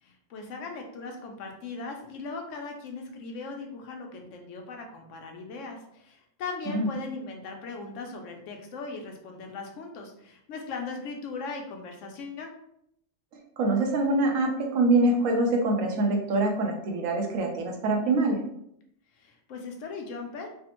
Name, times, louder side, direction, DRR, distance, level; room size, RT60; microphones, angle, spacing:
voice 1, 0.0-12.5 19.1-20.5, left 4 dB, 70° left, 2 dB, 0.9 m, -39 dB
voice 2, 13.6-18.4, right 2 dB, 75° right, 2 dB, 1.0 m, -24 dB
3.3 x 2.0 x 2.9 m, 0.73 s
omnidirectional pair, 1.4 m